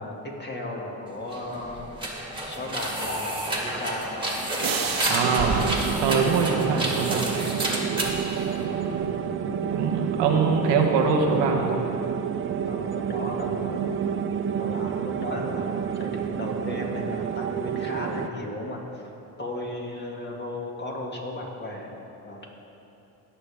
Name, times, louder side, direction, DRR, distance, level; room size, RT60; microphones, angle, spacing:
voice 1, 0.0-1.9 2.5-4.2 10.2-10.5 12.7-13.8 14.5-19.1 19.4-21.9 22.3-22.5, left 1 dB, 25° left, -1 dB, 2.0 m, -35 dB
sound 1, 1.2-9.1, right 1 dB, 10° right, 2.0 m, -30 dB
sound 2, 4.6-7.3, right 5 dB, 50° right, 1.3 m, -33 dB
voice 2, 5.0-7.7 9.7-11.8, right 5 dB, 85° right, 2 dB, 1.1 m, -24 dB
sound 3, 5.2-18.3, right 8 dB, 30° right, 0.4 m, -29 dB
19.0 x 6.9 x 3.5 m, 3.0 s
cardioid pair, 90°, 42 cm